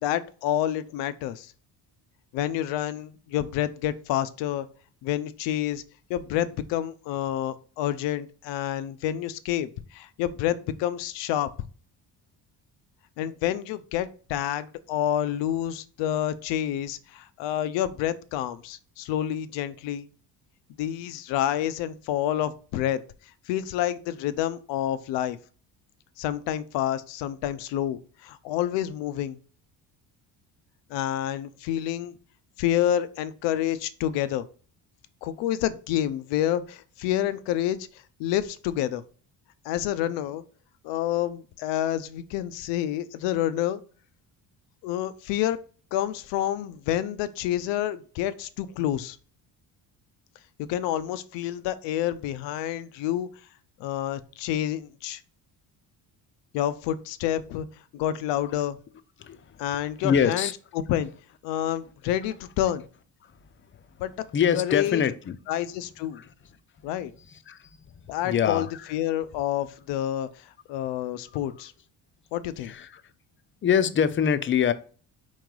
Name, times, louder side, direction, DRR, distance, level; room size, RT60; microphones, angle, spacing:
voice 1, 0.0-1.5 2.3-4.7 5.0-5.8 6.1-11.5 13.2-20.1 20.8-23.0 23.5-25.4 26.2-29.4 30.9-32.1 32.6-34.4 35.2-37.9 38.2-39.0 39.6-40.4 40.8-43.8 44.8-45.6 45.9-49.2 50.7-53.3 53.8-55.2 56.5-57.7 57.9-58.8 59.6-60.5 60.7-61.1 61.4-62.8 64.0-64.1 64.5-65.0 65.5-66.2 66.8-67.1 68.1-71.7 72.3-72.7, left 11 dB, 85° left, 0.5 m, -28 dB
voice 2, 60.0-60.5 64.3-65.4 66.1-66.2 67.3-67.6 68.2-68.9 72.6-73.0 73.6-74.7, left 8 dB, 30° left, 0.4 m, -24 dB
4.4 x 3.1 x 3.7 m
cardioid pair, 95°, 42 cm